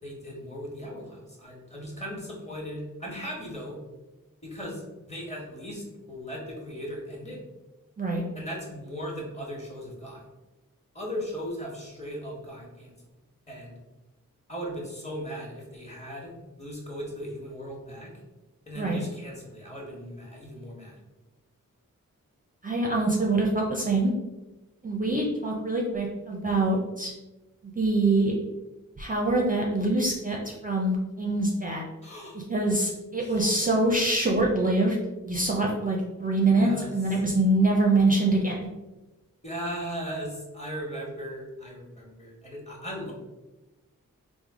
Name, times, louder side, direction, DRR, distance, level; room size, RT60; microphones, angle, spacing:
voice 1, 0.0-3.8 4.4-7.4 8.3-10.3 10.9-12.9 13.5-13.7 14.5-16.3 16.6-18.1 18.7-21.0 32.0-32.4 33.2-33.5 36.6-37.2 39.4-43.1, equal, 20° left, -2 dB, 1.2 m, -38 dB
voice 2, 22.6-24.1 24.8-27.1 27.8-28.3 29.0-31.8 32.5-35.0 35.2-38.7, right 2 dB, 25° right, -2 dB, 0.5 m, -24 dB
3.3 x 2.0 x 3.6 m, 1.1 s
cardioid pair, 40°, 34 cm